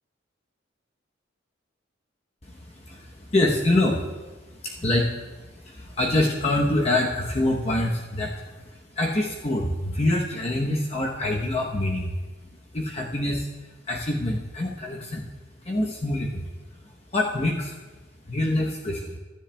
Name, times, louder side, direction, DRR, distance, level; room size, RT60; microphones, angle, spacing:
voice 1, 2.4-12.2 12.7-15.3 15.6-16.5 17.1-17.8 18.3-19.2, left 1 dB, 30° left, -1 dB, 0.8 m, -26 dB
21.5 x 10.0 x 2.2 m, 1.2 s
head